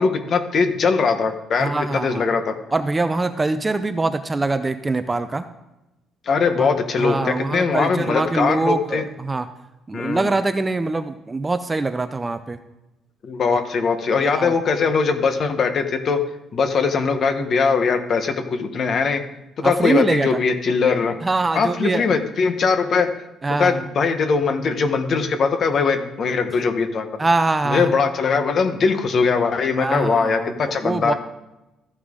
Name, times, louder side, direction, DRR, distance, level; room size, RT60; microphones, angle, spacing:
voice 1, 0.0-2.5 6.2-9.0 9.9-10.3 13.2-16.2 16.5-19.2 19.6-21.2 21.5-23.1 23.6-27.1 27.7-31.1, left 5 dB, 40° left, 8 dB, 1.1 m, -21 dB
voice 2, 1.6-2.3 2.7-5.5 6.6-6.7 7.0-9.5 9.9-12.6 13.5-13.6 14.2-14.5 19.6-20.4 21.2-22.1 23.4-23.8 27.2-28.0 29.8-31.1, right 3 dB, 15° right, 10 dB, 0.4 m, -23 dB
14.0 x 9.6 x 3.7 m, 0.96 s
cardioid pair, 155°, 0 cm